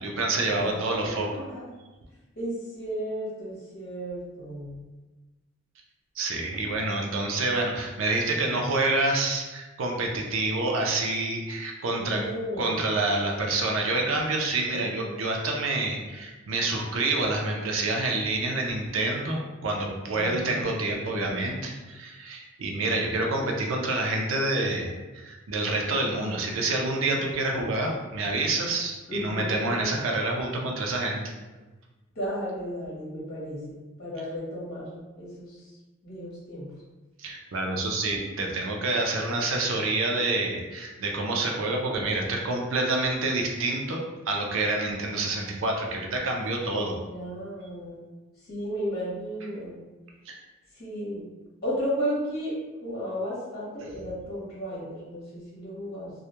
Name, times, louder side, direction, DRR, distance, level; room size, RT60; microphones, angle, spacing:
voice 1, 0.0-1.3 6.2-12.2 12.6-31.2 37.2-47.0 50.3-50.4, right 2 dB, 80° right, 1 dB, 0.5 m, -27 dB
voice 2, 0.5-1.6 2.4-4.8 12.0-12.8 14.7-15.2 20.1-20.6 29.1-30.0 32.1-35.6 36.0-36.7 47.1-48.0 48.5-49.8 50.8-51.2 51.6-52.5 52.8-56.1, equal, 50° left, -7 dB, 0.9 m, -34 dB
2.3 x 2.1 x 2.9 m, 1.2 s
head